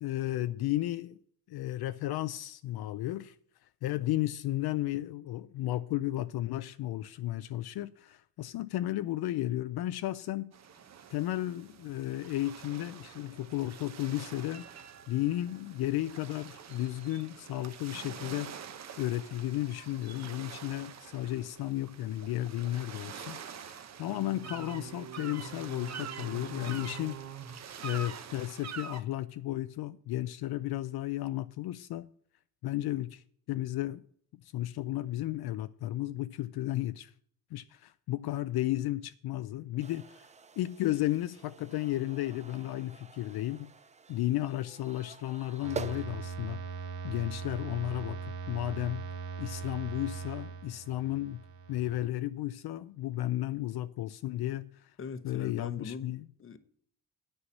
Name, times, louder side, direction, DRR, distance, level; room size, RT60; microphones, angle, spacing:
voice 1, 0.0-1.2 1.5-3.4 3.8-10.5 11.1-14.7 15.1-18.5 19.0-27.2 27.8-32.1 32.6-34.0 34.4-37.1 37.5-43.7 44.1-46.6 47.0-49.1 49.4-51.4 51.7-55.0 55.2-56.3, left 15 dB, 65° left, 0.5 m, -34 dB
sound 1, 10.5-29.0, right 7 dB, 40° right, 1.0 m, -45 dB
sound 2, 39.8-46.1, right 6 dB, 20° right, 0.4 m, -46 dB
sound 3, 45.6-52.1, right 5 dB, 75° right, 1.9 m, -40 dB
voice 2, 55.0-56.1 56.4-56.6, left 6 dB, 30° left, 0.9 m, -40 dB
9.8 x 5.7 x 8.4 m
cardioid pair, 155°, 41 cm